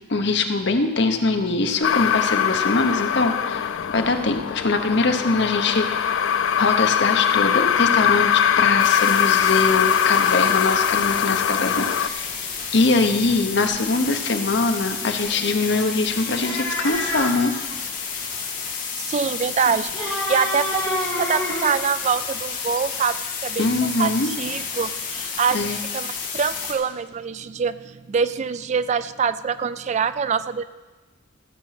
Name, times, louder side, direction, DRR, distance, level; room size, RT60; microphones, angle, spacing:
voice 1, 0.1-6.2 6.6-17.5 23.6-24.3 25.5-25.8, left 3 dB, 65° left, 6 dB, 1.0 m, -23 dB
sound 1, 1.8-12.1, left 8 dB, 90° left, 0.5 m, -21 dB
sound 2, 8.8-26.7, left 6 dB, 45° left, 2.1 m, -31 dB
sound 3, 16.4-17.4 19.6-21.8, left 1 dB, 15° left, 2.9 m, -27 dB
voice 2, 19.0-23.2 23.4-23.7 24.0-26.1 26.3-30.6, right 6 dB, 35° right, 14 dB, 0.3 m, -25 dB
14.5 x 7.4 x 5.8 m, 1.2 s
head